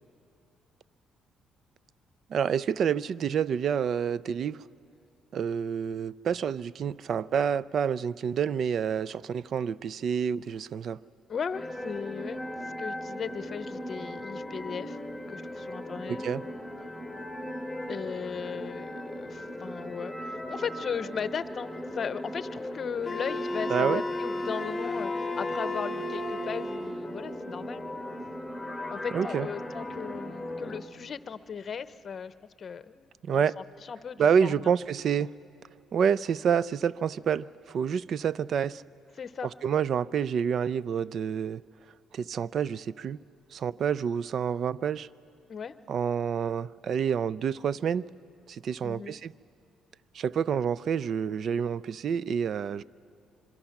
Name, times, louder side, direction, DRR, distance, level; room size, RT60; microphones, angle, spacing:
voice 1, 2.3-4.6 5.3-11.0 16.1-16.4 23.7-24.0 29.1-29.5 33.2-33.5 34.2-35.3 35.9-38.8 39.6-41.6 42.1-43.2 43.5-45.1 45.9-48.0 48.5-49.3 50.1-52.8, right 7 dB, 55° right, 20 dB, 0.4 m, -28 dB
voice 2, 11.3-12.4 12.8-15.0 15.3-16.2 17.9-27.9 28.9-34.7 39.2-39.5 45.5-45.7 48.8-49.2, left 6 dB, 45° left, 13 dB, 0.8 m, -37 dB
sound 1, 11.5-30.8, left 1 dB, ahead, 2.5 m, -38 dB
Wind instrument woodwind instrument, 23.0-27.2, left 2 dB, 25° left, 1.5 m, -34 dB
26.0 x 23.5 x 5.9 m, 2.7 s
cardioid pair, 90°, 0 cm